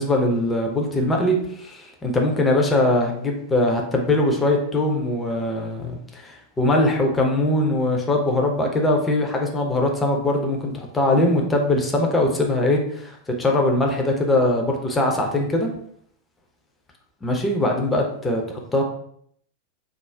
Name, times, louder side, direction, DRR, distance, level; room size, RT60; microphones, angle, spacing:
voice 1, 0.0-15.7 17.2-18.4 18.7-18.8, left 1 dB, 15° left, 1 dB, 0.5 m, -21 dB
2.5 x 2.0 x 3.2 m, 0.67 s
figure-of-eight pair, 90°, 0 cm